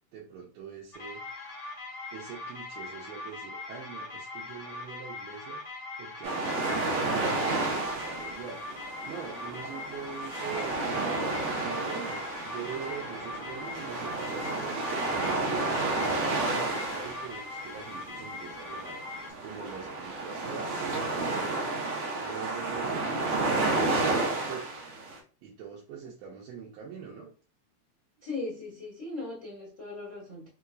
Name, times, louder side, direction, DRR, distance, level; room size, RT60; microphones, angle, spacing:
voice 1, 0.1-1.2 2.1-8.6 9.0-11.0 11.5-24.7 25.4-27.3, right 7 dB, 80° right, 2.7 m, -43 dB
sound 1, 0.9-19.3, left 3 dB, 45° left, 1.5 m, -41 dB
sound 2, 6.2-25.2, right 2 dB, 65° right, 2.1 m, -31 dB
voice 2, 28.2-30.5, left 3 dB, 80° left, 0.6 m, -38 dB
5.7 x 2.9 x 2.5 m
omnidirectional pair, 4.2 m